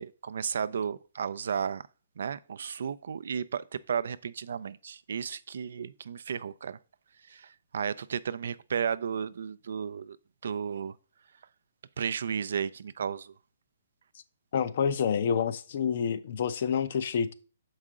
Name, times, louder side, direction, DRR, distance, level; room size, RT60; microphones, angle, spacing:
voice 1, 0.0-1.8 2.2-6.8 7.3-10.2 10.4-10.9 12.0-13.3, right 7 dB, 70° right, 0.4 m, -33 dB
voice 2, 14.5-17.3, left 7 dB, 55° left, 0.6 m, -28 dB
6.5 x 4.8 x 3.7 m
hypercardioid pair, 145°, 0 cm